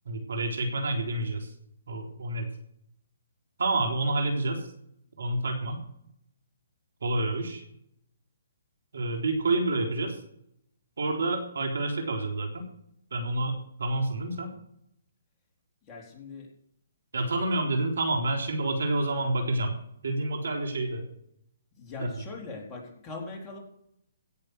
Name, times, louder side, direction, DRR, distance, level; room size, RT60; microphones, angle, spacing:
voice 1, 0.1-1.5 1.9-2.5 3.6-4.7 5.2-5.8 7.0-7.6 8.9-10.2 11.0-12.7 13.1-14.5 17.1-19.7 20.0-21.0 22.0-22.1, right 2 dB, 75° right, 3 dB, 3.9 m, -28 dB
voice 2, 15.9-16.5 21.8-23.6, left 3 dB, 20° left, -1 dB, 4.0 m, -41 dB
16.5 x 7.1 x 6.6 m, 0.71 s
hypercardioid pair, 140°, 0 cm